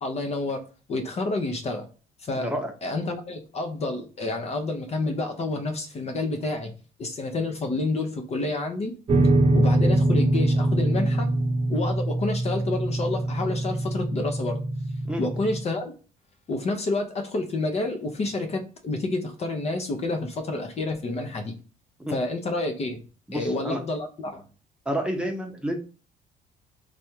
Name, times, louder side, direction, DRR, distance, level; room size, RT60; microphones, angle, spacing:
voice 1, 0.0-1.9 2.2-2.5 2.8-6.7 7.0-8.9 9.5-11.3 11.7-14.6 15.2-15.9 16.5-21.5 22.1-23.0 23.3-24.4, left 2 dB, 40° left, 5 dB, 0.8 m, -29 dB
voice 2, 2.4-2.7 15.1-15.2 22.0-22.1 23.3-23.8 24.9-25.9, equal, 5° right, 2 dB, 0.8 m, -29 dB
sound 1, 9.1-15.6, right 1 dB, 35° right, 0.8 m, -23 dB
3.4 x 2.6 x 4.4 m, 0.35 s
cardioid pair, 110°, 17 cm